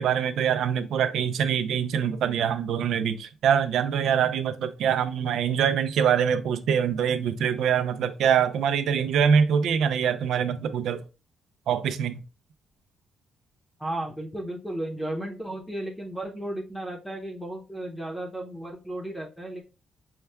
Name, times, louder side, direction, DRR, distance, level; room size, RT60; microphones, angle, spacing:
voice 1, 0.0-11.0 11.7-12.2, right 7 dB, 85° right, 0.5 m, -24 dB
voice 2, 13.8-19.6, right 1 dB, 5° left, 0.8 m, -34 dB
5.5 x 2.3 x 3.4 m
wide cardioid pair, 170°, 0 cm